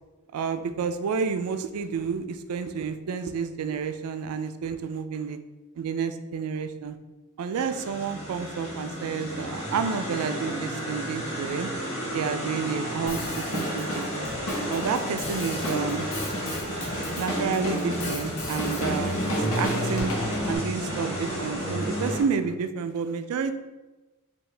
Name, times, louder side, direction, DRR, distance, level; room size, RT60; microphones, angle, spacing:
voice 1, 0.3-5.4 5.7-7.0 7.4-11.7 12.1-13.9 14.1-14.3 14.7-16.1 17.2-20.1 20.5-23.5, right 6 dB, 75° right, 9 dB, 0.3 m, -30 dB
sound 1, 7.5-22.2, equal, 30° left, 1.3 m, -32 dB
Drum kit, 13.1-20.6, equal, 65° left, 0.8 m, -32 dB
4.6 x 2.4 x 3.3 m, 1.1 s
head